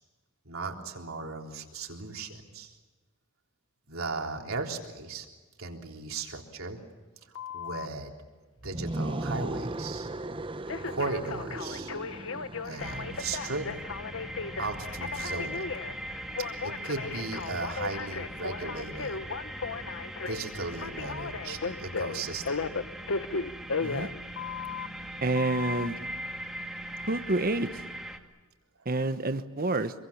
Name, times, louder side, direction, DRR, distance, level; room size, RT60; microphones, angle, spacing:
voice 1, 0.5-2.8 3.9-5.3 5.6-6.8 7.5-8.1 8.6-10.1 10.9-11.9 12.6-13.7 14.6-15.7 16.6-19.2 20.3-22.6, right 3 dB, 75° right, 2 dB, 3.7 m, -36 dB
Telephone, 7.3-7.9 10.7-24.9 25.3-25.9, left 5 dB, 65° left, 0.9 m, -36 dB
sound 1, 8.6-13.6, right 2 dB, 25° right, 0.8 m, -37 dB
sound 2, 12.8-28.2, right 1 dB, ahead, 2.2 m, -40 dB
voice 2, 25.2-25.9 27.1-27.7 28.9-29.9, right 2 dB, 45° right, 9 dB, 1.1 m, -28 dB
26.5 x 24.0 x 7.3 m, 1.3 s
head